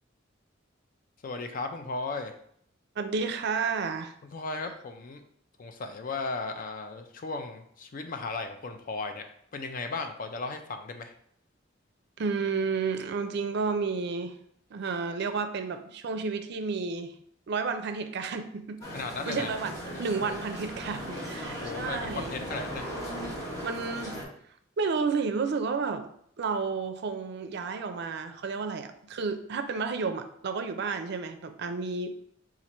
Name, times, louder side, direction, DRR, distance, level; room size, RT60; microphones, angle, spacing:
voice 1, 1.2-2.3 4.3-5.2 5.6-9.3 9.5-11.1 18.9-19.5 21.5-22.9, left 3 dB, 45° left, 6 dB, 0.5 m, -36 dB
voice 2, 3.0-4.1 12.2-14.4 14.7-17.2 17.5-18.7 19.3-22.3 23.6-24.2 24.8-26.1 26.4-32.1, right 4 dB, 60° right, 8 dB, 0.4 m, -31 dB
sound 1, 18.8-24.2, equal, 15° left, 1.1 m, -37 dB
4.4 x 2.5 x 4.1 m, 0.67 s
head